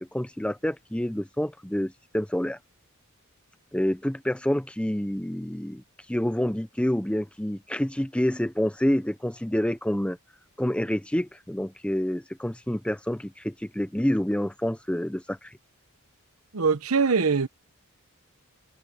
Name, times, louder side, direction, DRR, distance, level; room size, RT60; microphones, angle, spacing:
voice 1, 0.0-2.6 3.7-5.8 6.1-10.2 10.6-15.5, equal, 5° left, 0.7 m, -28 dB
voice 2, 16.5-17.5, right 5 dB, 75° right, 1.0 m, -22 dB
head